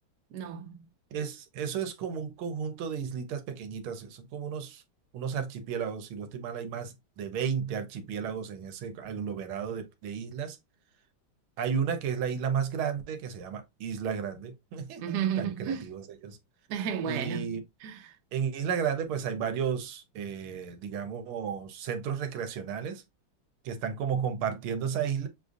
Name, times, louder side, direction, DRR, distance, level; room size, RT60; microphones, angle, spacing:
voice 1, 0.3-0.9 15.0-15.9 16.7-17.5 17.8-18.2, right 8 dB, 65° right, 1.2 m, -32 dB
voice 2, 1.1-4.8 5.1-10.6 11.6-16.4 17.0-17.6 18.3-23.0 23.6-25.3, right 7 dB, 90° right, 1.6 m, -33 dB
6.5 x 2.5 x 2.4 m
omnidirectional pair, 2.3 m